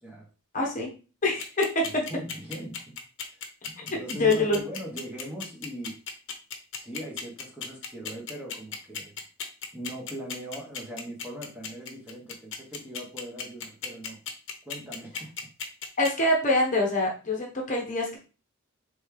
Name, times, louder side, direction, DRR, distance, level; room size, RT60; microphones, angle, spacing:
voice 1, 0.5-0.9 1.2-2.0 3.8-4.6 16.0-18.2, left 2 dB, 35° left, -1 dB, 0.9 m, -25 dB
sound 1, 1.4-16.1, left 7 dB, 60° left, 0.8 m, -35 dB
voice 2, 2.0-2.9 3.6-6.0 6.8-9.1 9.7-14.2 14.6-15.3, right 1 dB, 5° right, -3 dB, 1.2 m, -40 dB
3.4 x 3.2 x 4.8 m, 0.34 s
head